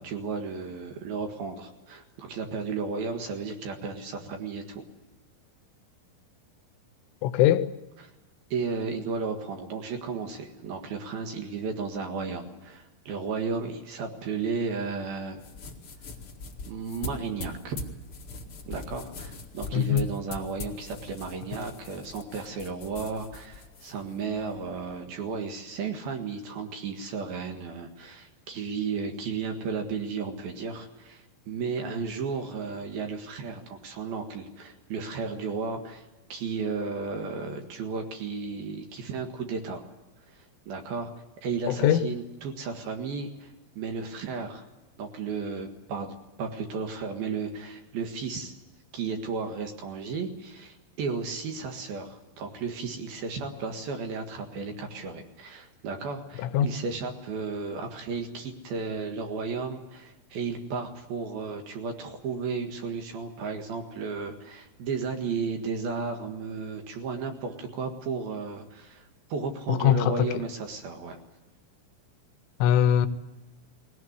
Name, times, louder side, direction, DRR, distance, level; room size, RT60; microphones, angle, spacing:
voice 1, 0.0-4.8 8.0-8.1 8.5-15.5 16.7-17.8 18.7-39.8 40.3-41.1 41.4-44.6 45.0-48.6 48.9-69.0 69.3-71.2, right 5 dB, 60° right, 3.0 m, -34 dB
voice 2, 7.2-7.7 19.7-20.1 41.8-42.0 56.4-56.7 69.7-70.3 72.6-73.1, left 11 dB, 80° left, 3.2 m, -21 dB
sound 1, 15.3-25.0, left 2 dB, 55° left, 1.4 m, -42 dB
21.0 x 17.5 x 9.6 m
omnidirectional pair, 5.8 m